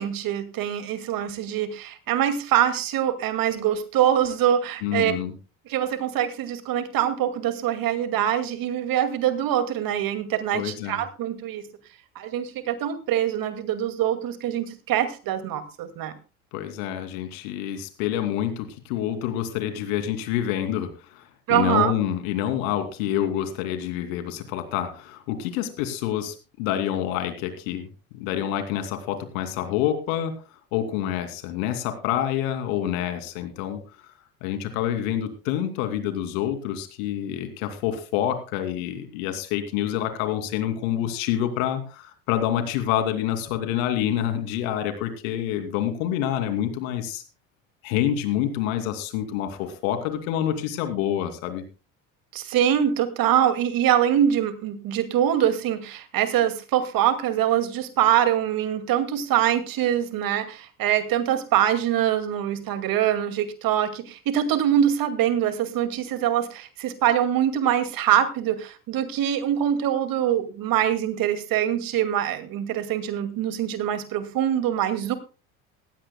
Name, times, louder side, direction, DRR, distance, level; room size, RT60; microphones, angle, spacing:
voice 1, 0.0-5.2 5.7-11.6 12.2-16.1 21.5-21.9 52.3-75.1, right 10 dB, 50° right, 10 dB, 2.3 m, -24 dB
voice 2, 4.8-5.3 10.5-11.0 16.5-27.9 28.1-30.3 30.7-33.8 34.4-47.2 47.8-51.6, left 11 dB, 70° left, 8 dB, 2.8 m, -27 dB
18.0 x 15.5 x 2.2 m, 0.33 s
hypercardioid pair, 75°, 43 cm